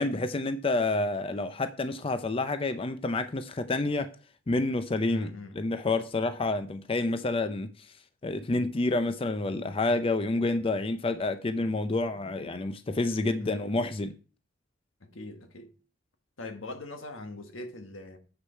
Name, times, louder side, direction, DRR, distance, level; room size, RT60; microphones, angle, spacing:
voice 1, 0.0-4.1 4.5-5.3 5.6-7.7 8.2-14.1, left 2 dB, 30° left, 0.5 m, -28 dB
voice 2, 5.1-5.6 13.4-13.8 15.0-15.7 16.4-18.2, left 2 dB, 85° left, 1.4 m, -42 dB
8.0 x 6.5 x 4.4 m
head